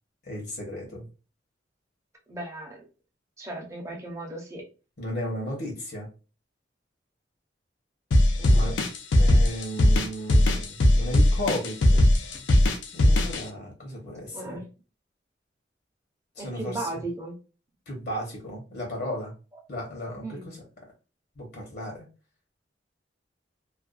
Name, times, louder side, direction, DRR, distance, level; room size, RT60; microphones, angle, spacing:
voice 1, 0.2-1.0 5.0-6.1 8.5-8.8 9.2-12.0 12.9-14.6 16.4-17.0 17.9-19.3 19.7-20.6 21.4-22.0, equal, 60° left, -1 dB, 0.9 m, -34 dB
voice 2, 2.3-2.8 3.4-4.6 8.4-8.8 14.3-14.7 16.4-17.4 20.2-20.6, right 2 dB, 15° right, -1 dB, 0.7 m, -36 dB
sound 1, 8.1-13.4, left 1 dB, 90° left, 0.4 m, -19 dB
2.4 x 2.2 x 2.3 m, 0.33 s
head